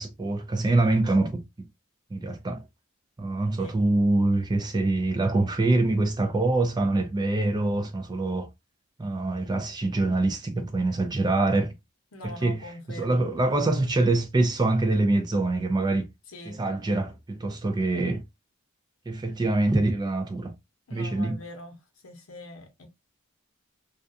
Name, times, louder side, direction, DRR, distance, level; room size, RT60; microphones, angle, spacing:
voice 1, 0.0-1.4 2.1-2.6 3.2-8.5 9.0-11.7 12.2-12.6 13.0-16.1 16.5-18.2 19.1-20.5 20.9-21.4, right 2 dB, 20° right, 0.3 m, -25 dB
voice 2, 12.1-13.3 16.3-16.6 20.9-21.7 22.0-22.9, left 1 dB, 70° left, 0.8 m, -42 dB
2.4 x 2.2 x 2.5 m
head